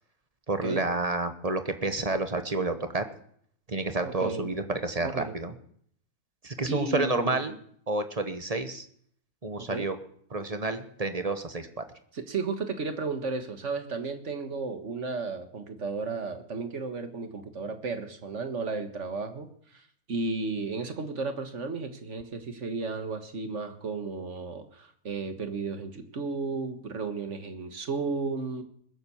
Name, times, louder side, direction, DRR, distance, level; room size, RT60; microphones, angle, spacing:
voice 1, 0.5-3.0 3.7-5.5 6.4-7.6 7.9-8.9 9.4-10.0 10.3-11.7, right 2 dB, 25° right, 9 dB, 1.1 m, -29 dB
voice 2, 4.0-4.5 5.0-5.3 6.7-7.4 9.6-9.9 12.1-19.5 20.1-28.6, right 4 dB, 50° right, 7 dB, 1.8 m, -33 dB
20.5 x 7.8 x 7.1 m, 0.65 s
omnidirectional pair, 1.6 m